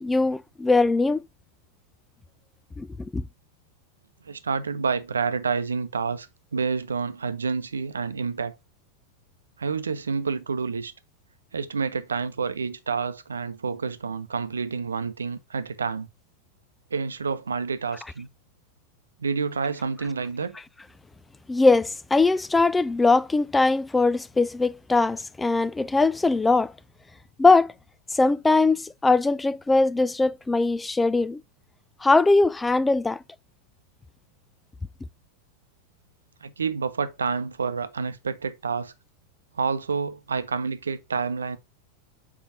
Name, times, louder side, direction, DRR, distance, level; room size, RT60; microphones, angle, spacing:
voice 1, 0.0-1.2 2.8-3.3 21.5-26.7 27.4-27.7 28.1-31.4 32.0-33.2, left 3 dB, 10° left, 0.4 m, -21 dB
voice 2, 4.3-6.3 6.5-8.5 9.6-10.9 11.5-16.1 16.9-18.3 19.2-20.6 36.4-38.9 39.6-41.6, right 5 dB, 70° right, 0.7 m, -28 dB
7.0 x 4.8 x 2.8 m
figure-of-eight pair, 90°, 0 cm